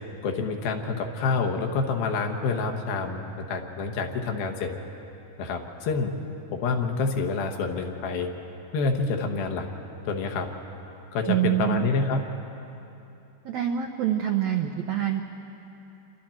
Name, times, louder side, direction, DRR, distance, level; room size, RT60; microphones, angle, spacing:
voice 1, 0.2-4.7 5.4-6.1 6.5-8.3 8.7-9.7 10.1-10.5 11.1-12.2, left 4 dB, 80° left, 4 dB, 3.1 m, -27 dB
voice 2, 11.3-11.9 13.4-15.2, right 11 dB, 80° right, 4 dB, 1.6 m, -25 dB
28.0 x 24.0 x 4.4 m, 2.9 s
omnidirectional pair, 4.3 m